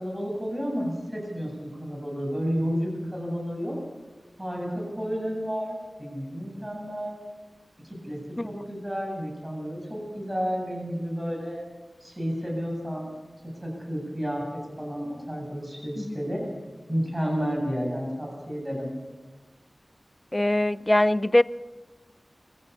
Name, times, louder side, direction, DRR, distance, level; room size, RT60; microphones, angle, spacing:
voice 1, 0.0-3.8 4.4-7.2 7.8-11.6 12.0-13.1 13.6-16.5 16.9-18.9, equal, 15° right, 7.8 m, -31 dB
voice 2, 20.3-21.4, left 1 dB, 20° left, 0.5 m, -22 dB
24.5 x 15.5 x 7.0 m
wide cardioid pair, 65°, 0 cm